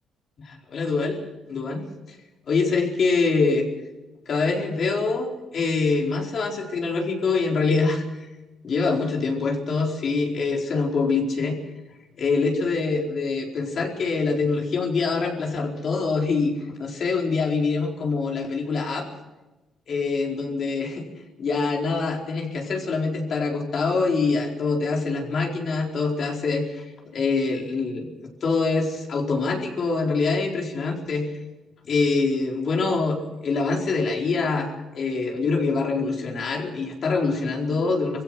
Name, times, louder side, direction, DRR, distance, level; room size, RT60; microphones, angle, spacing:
voice 1, 0.4-1.2 1.5-2.2 2.5-3.7 4.3-8.3 8.6-11.6 12.2-16.5 16.8-19.1 19.9-21.0 21.4-26.9 27.1-28.1 28.4-31.3 31.8-33.2 33.4-38.2, left 4 dB, 55° left, 0 dB, 4.5 m, -24 dB
22.0 x 16.0 x 7.8 m, 1.1 s
cardioid pair, 90°, 0 cm